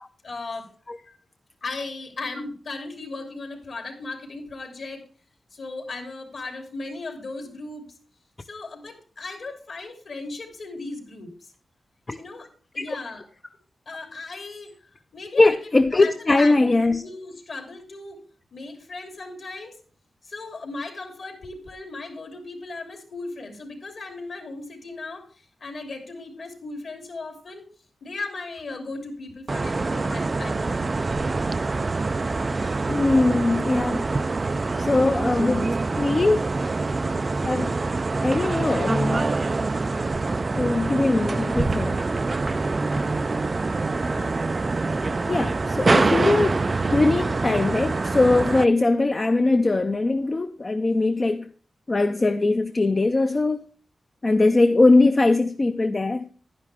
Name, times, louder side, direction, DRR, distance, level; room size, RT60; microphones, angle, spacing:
voice 1, 0.2-0.7 1.6-5.0 5.5-7.8 8.4-11.5 12.2-13.2 13.9-18.2 18.5-19.8 20.2-27.6 28.0-30.8 44.0-44.3, left 3 dB, 60° left, 3.1 m, -37 dB
voice 2, 15.4-17.0 32.9-34.0 34.8-35.7 36.0-36.4 37.4-37.7 38.2-39.2 40.5-42.0 45.3-46.6 46.9-51.5 51.9-53.6 54.2-56.3, left 2 dB, 30° left, 0.6 m, -21 dB
sound 1, 29.5-48.6, right 3 dB, 35° right, 0.4 m, -25 dB
10.5 x 10.5 x 3.4 m
wide cardioid pair, 115°, 0 cm